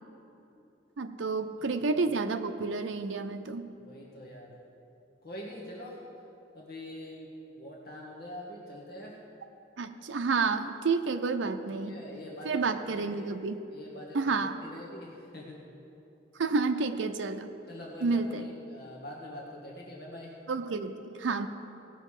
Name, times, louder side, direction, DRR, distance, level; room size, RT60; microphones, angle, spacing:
voice 1, 1.0-3.7 9.8-12.0 12.4-13.6 14.1-14.6 16.4-17.5 18.0-18.5 20.5-21.5, right 4 dB, 85° right, 7 dB, 0.6 m, -30 dB
voice 2, 3.8-4.5 5.2-6.0 6.5-9.2 11.7-13.3 13.7-15.6 17.7-20.3, left 1 dB, 60° left, -3 dB, 1.6 m, -44 dB
17.5 x 6.6 x 4.9 m, 2.8 s
head